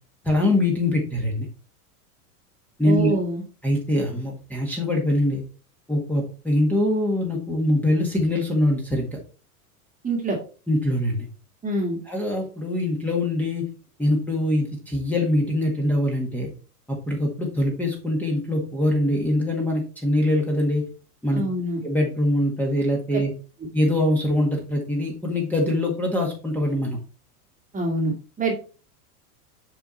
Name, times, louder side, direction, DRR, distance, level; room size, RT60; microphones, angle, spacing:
voice 1, 0.2-1.5 2.8-3.1 3.6-5.4 5.9-9.1 10.7-11.3 12.1-13.6 14.0-16.5 16.9-20.8 21.2-21.4 21.8-23.3 23.7-27.0, left 1 dB, 5° left, -1 dB, 1.7 m, -23 dB
voice 2, 2.8-3.4 10.0-10.4 11.6-12.0 21.3-21.8 27.7-28.5, right 1 dB, 15° right, 2 dB, 1.8 m, -25 dB
7.0 x 4.8 x 4.2 m, 0.37 s
supercardioid pair, 130°, 47 cm